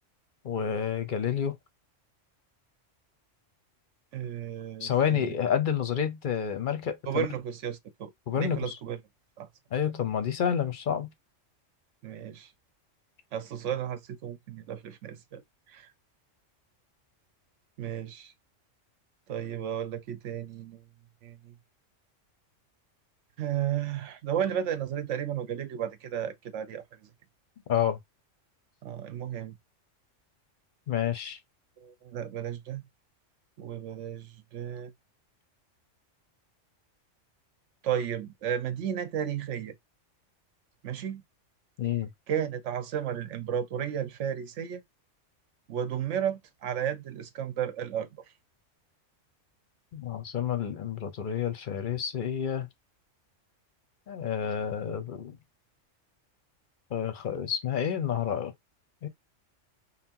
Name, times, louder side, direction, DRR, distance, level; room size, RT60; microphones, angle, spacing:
voice 1, 0.4-1.5 4.8-7.3 8.3-8.8 9.7-11.1 27.7-28.0 30.9-31.4 41.8-42.1 49.9-52.7 54.1-55.4 56.9-58.5 59.0-59.1, left 8 dB, 50° left, 0.7 m, -29 dB
voice 2, 4.1-5.3 7.1-8.1 8.4-9.0 9.4-9.5 12.0-12.5 13.3-15.4 15.7-15.9 17.8-18.3 19.3-20.9 21.2-21.6 23.4-27.1 28.8-29.6 31.8-32.8 33.6-34.9 37.8-39.8 40.8-41.2 42.3-44.8 45.7-48.3, right 9 dB, 75° right, 1.0 m, -33 dB
5.5 x 2.1 x 2.8 m
omnidirectional pair, 1.3 m